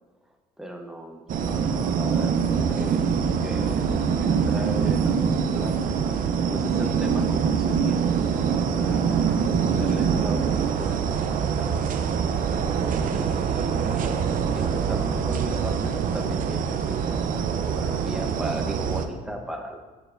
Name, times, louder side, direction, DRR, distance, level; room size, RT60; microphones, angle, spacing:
voice 1, 0.6-5.7 6.5-12.3 13.0-14.2 14.5-19.8, right 1 dB, 5° right, 2 dB, 0.8 m, -38 dB
sound 1, 1.3-19.1, right 6 dB, 50° right, 0.5 m, -24 dB
7.0 x 6.4 x 2.5 m, 1.2 s
cardioid pair, 110°, 17 cm